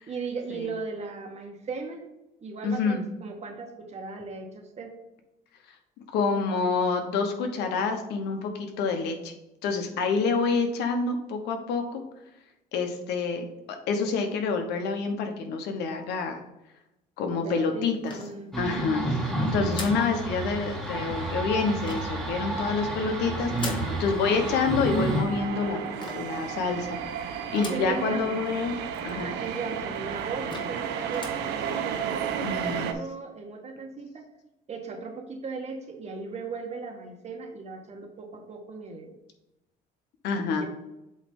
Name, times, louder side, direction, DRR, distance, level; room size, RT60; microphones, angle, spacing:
voice 1, 0.1-2.0 2.4-4.9 17.2-18.7 27.5-28.3 29.1-34.2 34.7-39.1 40.6-40.7, right 4 dB, 40° right, 3 dB, 1.5 m, -37 dB
voice 2, 2.6-3.0 6.0-9.3 9.6-12.0 12.7-16.4 17.2-18.1 18.6-29.3 32.4-32.9 40.2-40.7, left 4 dB, 80° left, 5 dB, 1.2 m, -28 dB
sound 1, 18.1-18.8 19.7-20.1 21.8-22.3 23.6-24.0 26.0-26.4 27.6-28.0 28.5-28.6 28.8-28.9 29.6-29.7 30.1-30.2 30.5-30.8 31.1-31.5, left 3 dB, 30° left, 1.5 m, -39 dB
sound 2, 18.5-25.2, right 1 dB, 5° left, 1.5 m, -30 dB
sound 3, 19.2-32.9, right 8 dB, 90° right, 0.8 m, -35 dB
7.9 x 3.2 x 5.4 m, 0.92 s
cardioid pair, 110°, 17 cm